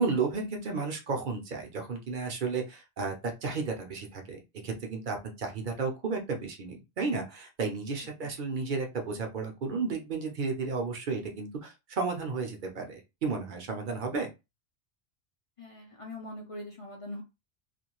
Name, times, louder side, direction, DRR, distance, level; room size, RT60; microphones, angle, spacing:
voice 1, 0.0-14.3, right 4 dB, 50° right, 3 dB, 0.7 m, -33 dB
voice 2, 15.6-17.2, left 1 dB, 45° left, 0 dB, 0.4 m, -42 dB
2.4 x 2.2 x 2.9 m, 0.26 s
omnidirectional pair, 1.2 m